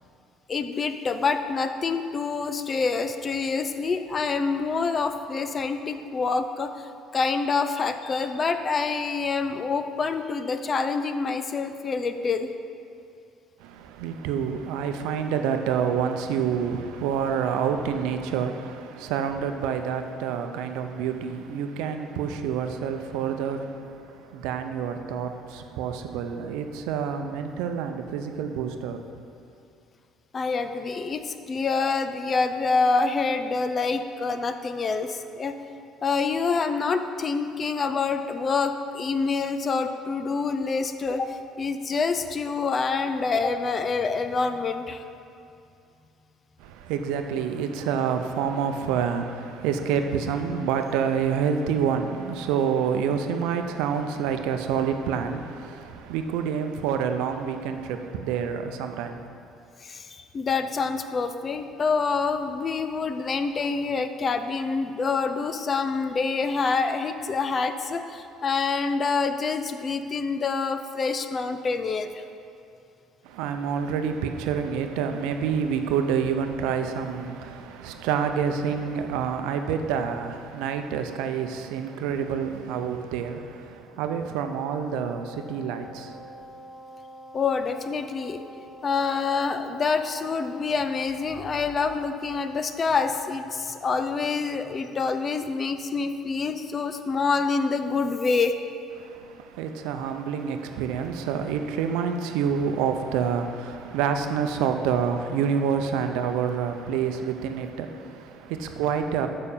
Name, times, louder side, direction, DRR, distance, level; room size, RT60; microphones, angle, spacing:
voice 1, 0.5-12.5 30.3-35.5 36.0-45.0 59.8-72.2 87.3-88.4 88.8-98.6, left 4 dB, 30° left, 8 dB, 0.5 m, -26 dB
voice 2, 13.6-29.0 46.6-59.3 73.2-86.3 99.0-109.3, right 7 dB, 85° right, 7 dB, 0.6 m, -28 dB
Wind instrument woodwind instrument, 85.0-92.3, right 1 dB, 55° right, 1.6 m, -46 dB
6.7 x 5.2 x 7.2 m, 2.5 s
cardioid pair, 120°, 0 cm